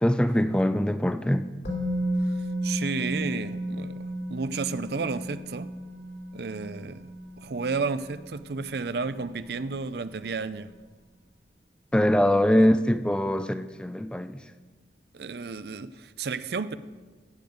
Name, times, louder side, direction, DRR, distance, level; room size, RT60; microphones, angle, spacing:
voice 1, 0.0-1.5 11.9-14.4, equal, 5° left, 11 dB, 0.4 m, -23 dB
Musical instrument, 1.6-9.5 9.8-10.0, equal, 60° left, 3.1 m, -34 dB
voice 2, 2.2-5.7 6.3-7.0 7.4-10.7 12.6-12.7 15.1-16.7, right 4 dB, 65° right, 14 dB, 0.5 m, -32 dB
15.5 x 5.3 x 7.9 m, 1.3 s
head